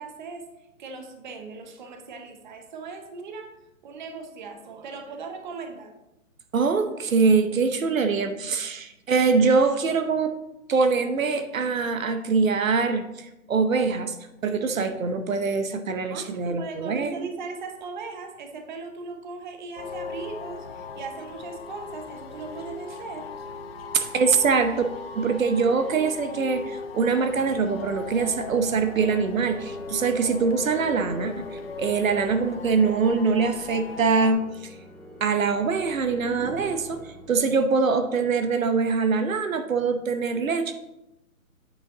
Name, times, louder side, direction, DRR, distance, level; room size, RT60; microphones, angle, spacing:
voice 1, 0.0-3.5 3.8-5.9 16.1-23.3, right 4 dB, 35° right, 5 dB, 0.9 m, -38 dB
voice 2, 6.5-10.3 10.7-14.2 14.4-17.1 23.9-24.9 25.2-34.8 35.2-40.7, right 4 dB, 70° right, 8 dB, 0.9 m, -23 dB
sound 1, 19.8-34.3, left 4 dB, 45° left, 0.9 m, -39 dB
Organ, 27.1-37.9, left 1 dB, ahead, 0.8 m, -47 dB
8.8 x 5.2 x 3.8 m, 0.94 s
hypercardioid pair, 155°, 42 cm